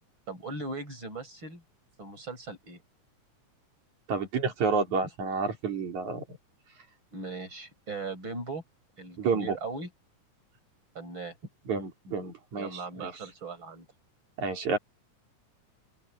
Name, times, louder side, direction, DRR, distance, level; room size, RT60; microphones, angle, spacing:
voice 1, 0.3-1.6 2.0-2.8 7.1-8.6 9.0-9.9 10.9-11.3 12.6-13.9, right 3 dB, 40° right, 7.8 m, -39 dB
voice 2, 4.1-6.2 9.2-9.6 11.7-13.1 14.4-14.8, right 4 dB, 70° right, 5.0 m, -30 dB
open air
omnidirectional pair, 3.5 m